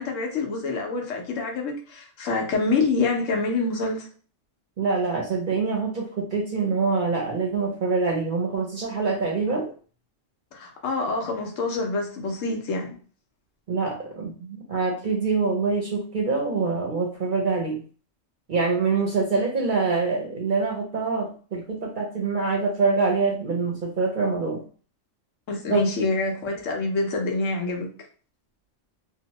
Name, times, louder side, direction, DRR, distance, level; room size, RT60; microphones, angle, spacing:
voice 1, 0.0-4.1 10.5-12.9 25.5-27.9, left 3 dB, 75° left, 1.1 m, -26 dB
voice 2, 4.8-9.7 13.7-17.8 18.5-24.6 25.7-25.8, right 4 dB, 55° right, 0.6 m, -25 dB
2.9 x 2.1 x 2.8 m
omnidirectional pair, 1.3 m